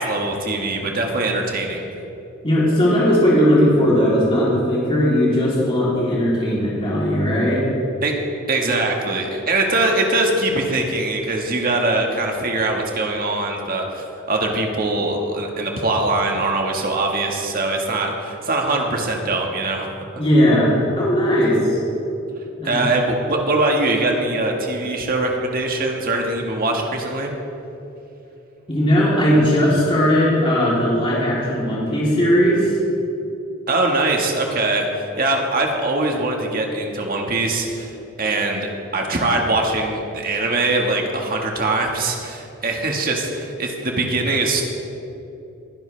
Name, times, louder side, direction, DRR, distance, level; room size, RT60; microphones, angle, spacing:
voice 1, 0.0-1.9 8.0-8.1 8.5-19.9 22.6-27.3 33.7-37.9 38.2-44.6, right 2 dB, 45° right, 1 dB, 1.7 m, -22 dB
voice 2, 2.4-7.6 20.2-21.8 22.6-22.8 28.7-32.8, equal, 25° left, -7 dB, 3.3 m, -18 dB
22.5 x 10.5 x 3.4 m, 2.9 s
head